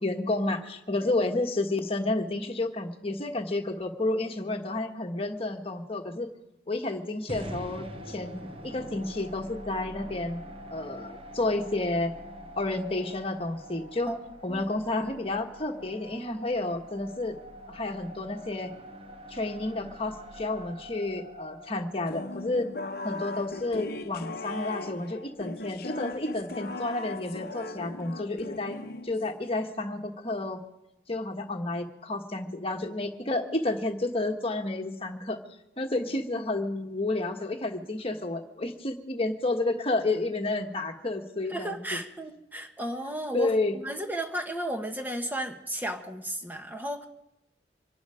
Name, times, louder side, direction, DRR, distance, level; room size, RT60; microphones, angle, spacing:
voice 1, 0.0-6.3 6.7-12.1 12.6-14.1 14.4-17.4 17.7-18.7 19.3-22.7 23.0-28.8 29.0-30.6 31.1-35.4 35.8-42.0 43.3-43.8, left 2 dB, 30° left, 3 dB, 1.4 m, -31 dB
sound 1, 7.3-23.4, equal, 30° right, 1.0 m, -45 dB
sound 2, 22.1-29.5, left 2 dB, 55° left, 0.9 m, -38 dB
voice 2, 41.5-47.1, right 1 dB, 10° right, 5 dB, 1.3 m, -34 dB
25.0 x 11.5 x 5.0 m, 0.90 s
head